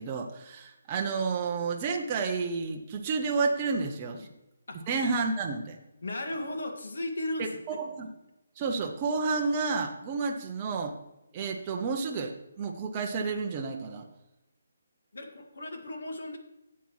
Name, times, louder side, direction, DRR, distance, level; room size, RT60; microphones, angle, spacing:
voice 1, 0.0-4.3 4.9-5.8 7.4-8.1 8.6-10.9 11.3-14.0, right 4 dB, 15° right, 1 dB, 0.5 m, -30 dB
voice 2, 6.0-7.5 15.1-16.4, left 1 dB, 65° left, 4 dB, 1.7 m, -35 dB
12.0 x 8.3 x 3.1 m, 0.92 s
hypercardioid pair, 180°, 0 cm